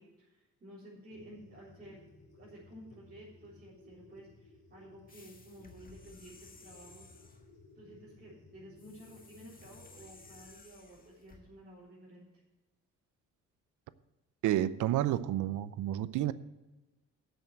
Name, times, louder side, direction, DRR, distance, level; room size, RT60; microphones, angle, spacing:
voice 1, 0.0-2.0 2.4-7.1 7.7-12.3, right 1 dB, 30° right, -9 dB, 4.0 m, -53 dB
sound 1, 1.1-10.5, left 3 dB, 50° left, 5.0 m, -58 dB
sound 2, 5.1-7.5 8.8-11.4, left 3 dB, 30° left, 1.7 m, -57 dB
voice 2, 14.4-16.3, right 13 dB, 80° right, 16 dB, 0.6 m, -30 dB
8.0 x 7.7 x 8.8 m, 1.1 s
cardioid pair, 90°, 30 cm